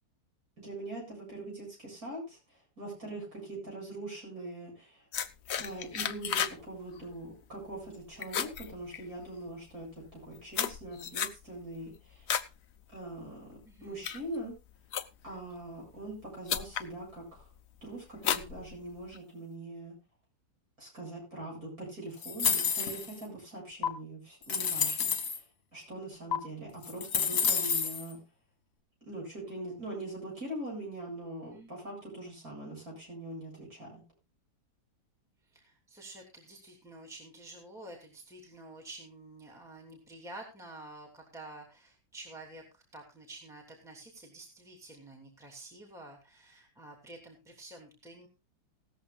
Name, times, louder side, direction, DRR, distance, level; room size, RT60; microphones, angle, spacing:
voice 1, 0.6-2.4 2.8-5.0 5.6-12.3 12.9-14.5 15.2-17.5 17.8-19.9 20.8-25.4 25.7-28.2 29.1-34.0, right 2 dB, 45° right, -1 dB, 8.3 m, -42 dB
sound 1, 5.1-6.6 6.9-7.2 7.6-7.9 8.2-9.4 10.0-12.5 12.9-13.3 13.8-15.4 16.1-16.2 16.5-16.9 17.4-17.7 18.2-19.2, left 8 dB, 65° left, 0.6 m, -34 dB
voice 2, 13.6-14.1 31.5-31.7 35.5-48.3, right 2 dB, ahead, 0 dB, 2.7 m, -49 dB
sound 2, 22.2-23.2 23.8-23.9 24.4-25.4 26.3-26.4 26.8-28.0, left 6 dB, 45° left, 1.8 m, -29 dB
17.0 x 13.5 x 2.3 m, 0.26 s
omnidirectional pair, 2.1 m